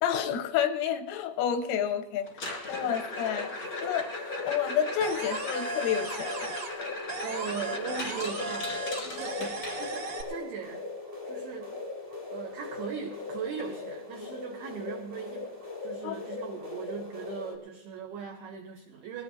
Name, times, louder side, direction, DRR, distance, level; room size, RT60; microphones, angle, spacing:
voice 1, 0.0-2.3 2.7-3.5 3.8-4.1 4.5-6.6 16.0-16.2, left 8 dB, 85° left, 8 dB, 3.6 m, -29 dB
sound 1, 2.3-10.2 12.5-12.6 12.8-13.2 13.6-13.7 14.3-14.4 16.2-16.3, left 2 dB, 55° left, 1.3 m, -39 dB
sound 2, 2.6-17.5, left 3 dB, 20° left, 0.9 m, -40 dB
sound 3, 5.0-6.8 7.1-10.2, right 3 dB, 55° right, 1.8 m, -37 dB
voice 2, 7.2-10.8 11.3-11.7 12.3-15.5 15.8-19.2, right 7 dB, 85° right, 3 dB, 2.2 m, -39 dB
20.5 x 16.0 x 2.7 m, 0.93 s
omnidirectional pair, 6.0 m